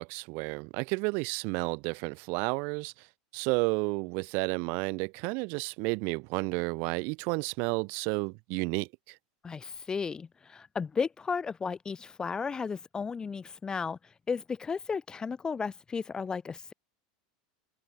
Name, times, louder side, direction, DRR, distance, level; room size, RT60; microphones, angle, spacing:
voice 1, 0.0-2.9 3.3-9.1, right 32 dB, 60° right, 0.8 m, -31 dB
voice 2, 9.4-14.0 14.3-16.7, left 5 dB, 20° left, 0.5 m, -34 dB
hypercardioid pair, 110°, 4 cm